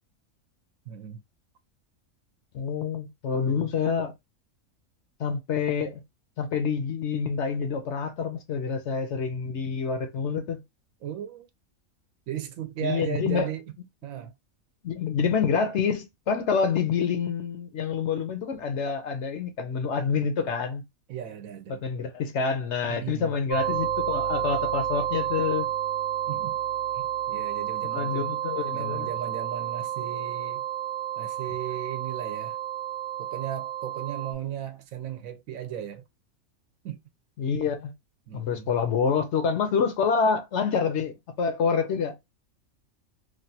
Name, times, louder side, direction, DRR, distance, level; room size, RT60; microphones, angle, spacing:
voice 1, 0.9-1.2 3.3-3.7 11.0-11.5 12.3-13.6 14.0-14.3 21.1-21.8 22.9-23.3 26.3-26.6 26.9-28.4 28.7-30.6 31.2-32.6 33.2-36.0 36.8-37.0 38.3-38.7, right 9 dB, 75° right, 1.0 m, -36 dB
voice 2, 2.5-4.1 5.2-6.0 6.4-10.6 12.8-13.5 14.8-20.8 21.7-25.7 27.9-29.1 37.4-37.9 38.3-42.2, left 6 dB, 65° left, 0.8 m, -27 dB
sound 1, 23.5-34.3, right 11 dB, 35° right, 1.0 m, -30 dB
3.2 x 2.3 x 2.7 m
omnidirectional pair, 1.5 m